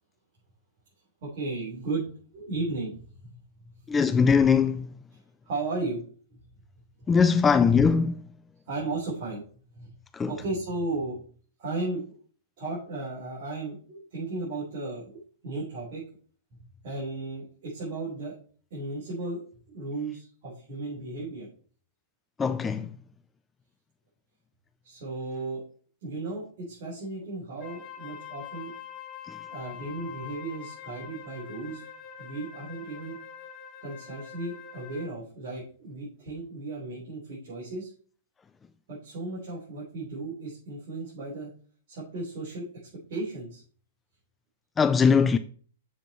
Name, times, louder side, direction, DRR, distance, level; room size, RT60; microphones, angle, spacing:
voice 1, 1.2-3.0 3.3-3.4 5.4-6.0 6.3-6.4 7.1-7.2 8.7-9.4 9.7-9.9 10.2-11.2 11.6-12.1 12.6-16.0 16.8-18.4 18.7-19.4 19.7-21.5 24.8-25.6 26.0-28.7 29.5-31.8 32.2-33.2 33.8-37.9 38.9-41.5 41.9-42.7 43.1-43.6, right 2 dB, 55° right, 3.7 m, -35 dB
voice 2, 3.9-4.9 7.1-8.3 10.1-10.3 22.4-23.0 29.3-29.4 44.8-45.4, left 6 dB, 15° left, 0.3 m, -21 dB
Wind instrument woodwind instrument, 27.6-35.2, left 9 dB, 35° left, 1.4 m, -44 dB
6.9 x 4.9 x 4.2 m
hypercardioid pair, 120°, 0 cm